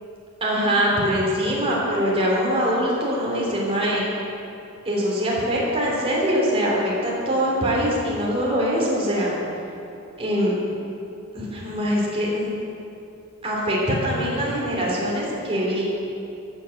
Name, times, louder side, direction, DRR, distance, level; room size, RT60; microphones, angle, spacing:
voice 1, 0.4-4.0 4.8-9.3 10.2-10.5 11.3-12.5 13.4-15.8, equal, 25° right, -4 dB, 3.0 m, -23 dB
14.0 x 6.7 x 7.6 m, 2.7 s
head